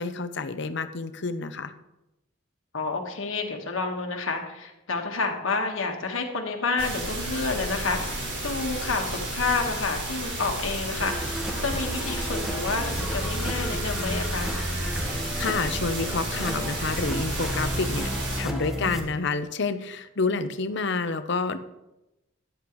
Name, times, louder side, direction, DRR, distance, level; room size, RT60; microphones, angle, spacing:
voice 1, 0.0-1.7 15.0-18.1 18.4-21.6, left 4 dB, 60° left, 10 dB, 0.7 m, -29 dB
voice 2, 2.7-14.6 20.3-20.4, left 3 dB, 85° left, 3 dB, 1.5 m, -29 dB
sound 1, 6.8-18.4, right 1 dB, 65° right, 4.8 m, -32 dB
sound 2, 11.0-19.0, equal, ahead, 1.2 m, -32 dB
13.5 x 10.5 x 3.1 m, 0.94 s
head